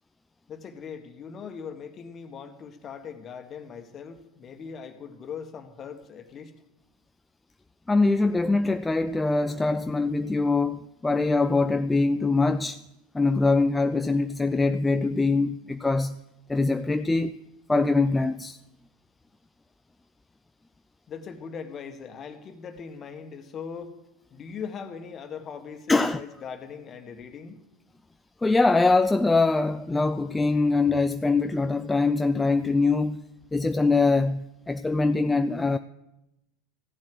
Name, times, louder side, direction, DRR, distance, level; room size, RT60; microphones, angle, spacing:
voice 1, 0.5-6.5 21.1-23.9 24.3-27.6, left 6 dB, 35° left, 1.6 m, -40 dB
voice 2, 7.9-12.8 13.1-16.2 16.5-17.3 17.7-18.6 25.9-26.2 28.4-33.2 33.5-35.8, left 3 dB, 10° left, 0.4 m, -23 dB
15.0 x 7.5 x 7.9 m
hypercardioid pair, 90°, 0 cm